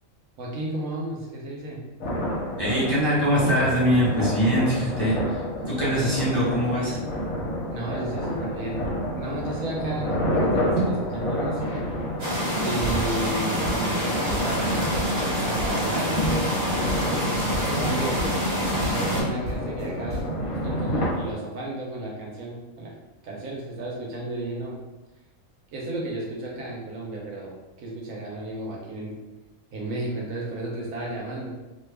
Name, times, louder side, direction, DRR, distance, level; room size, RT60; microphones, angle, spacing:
voice 1, 0.4-1.9 7.7-8.8 9.2-11.9 12.6-15.0 15.4-18.3 18.9-20.3 20.6-22.9 23.2-24.8 25.7-29.2 29.7-31.6, right 2 dB, 80° right, -3 dB, 1.2 m, -33 dB
sound 1, 2.0-21.3, equal, 75° left, 1.3 m, -29 dB
voice 2, 2.6-5.4 5.7-7.0 10.7-10.9, equal, 20° left, -10 dB, 0.8 m, -23 dB
sound 2, 12.2-19.2, equal, 45° right, 1.2 m, -27 dB
sound 3, 13.6-14.7 14.9-16.0 16.2-16.6 16.9-17.3 17.5-17.9 18.2-18.6 18.8-20.4, left 1 dB, 25° right, 1.3 m, -34 dB
2.9 x 2.3 x 3.3 m, 1.1 s
omnidirectional pair, 1.4 m